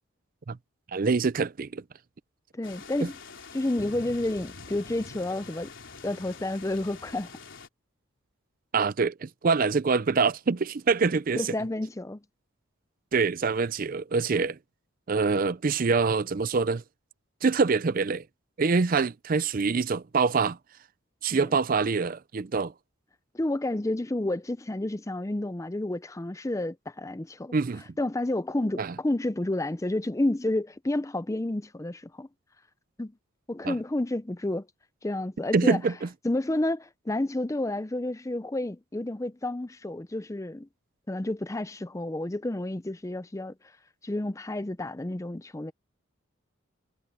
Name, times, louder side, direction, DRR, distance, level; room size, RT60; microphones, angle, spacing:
voice 1, 0.9-1.8 3.0-3.1 8.7-11.5 13.1-14.6 15.1-16.8 17.4-18.2 18.6-20.6 21.2-22.7 27.5-27.8 28.8-28.9 33.6-33.7 35.5-36.1, right 4 dB, 40° right, 0.4 m, -25 dB
voice 2, 2.5-3.2 3.5-5.7 6.0-7.3 11.4-12.2 21.3-21.5 23.3-27.5 28.0-32.3 33.0-33.1 33.5-34.7 35.0-35.8 36.2-40.7 41.1-43.5 44.0-45.7, left 1 dB, 15° left, 0.5 m, -30 dB
sound 1, 2.6-7.7, left 4 dB, 60° left, 3.8 m, -45 dB
head